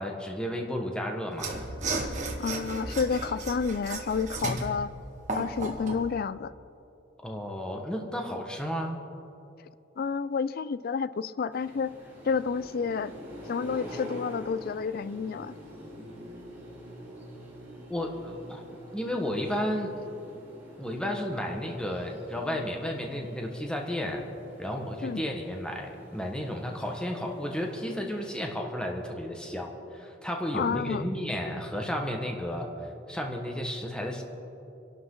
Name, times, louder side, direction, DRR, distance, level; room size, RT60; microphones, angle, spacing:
voice 1, 0.0-1.6 7.2-9.0 17.9-18.6 18.9-19.9 20.8-24.2 24.6-32.7 33.1-34.2, equal, 5° left, 1.5 m, -33 dB
Mechanisms / Sawing, 1.3-6.1, right 2 dB, 40° right, 1.9 m, -34 dB
voice 2, 2.4-4.9 5.4-6.5 10.0-11.9 12.2-13.1 13.5-15.5 25.0-25.2 30.5-31.1, left 5 dB, 55° left, 0.4 m, -30 dB
sound 1, 11.5-28.5, equal, 10° right, 4.4 m, -46 dB
28.0 x 12.0 x 3.9 m
head